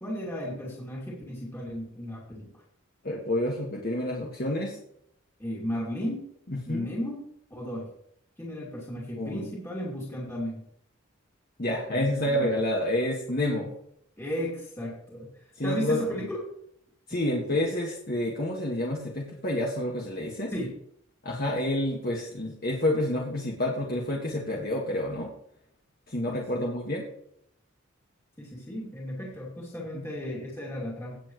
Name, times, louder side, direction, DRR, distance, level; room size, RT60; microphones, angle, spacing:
voice 1, 0.0-2.6 5.4-6.3 6.7-7.2 7.5-7.9 8.4-10.6 11.9-12.6 14.2-15.3 15.6-16.5 17.5-17.6 20.5-20.8 26.5-26.6 28.4-31.2, equal, 15° left, -4 dB, 2.5 m, -35 dB
voice 2, 3.0-4.8 6.7-6.9 9.2-9.5 11.6-13.7 15.6-16.3 17.1-20.5 21.2-25.3 26.1-27.1 29.9-30.0, left 1 dB, 45° left, -2 dB, 1.9 m, -29 dB
18.5 x 7.4 x 3.2 m, 0.70 s
head